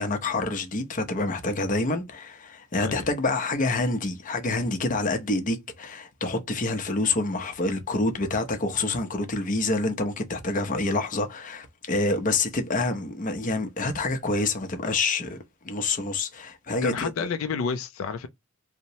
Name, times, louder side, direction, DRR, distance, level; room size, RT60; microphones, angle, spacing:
voice 1, 0.0-15.4 15.6-17.1, left 2 dB, 40° left, 0.6 m, -27 dB
voice 2, 16.8-18.3, left 5 dB, 85° left, 0.4 m, -29 dB
2.9 x 2.0 x 2.6 m
head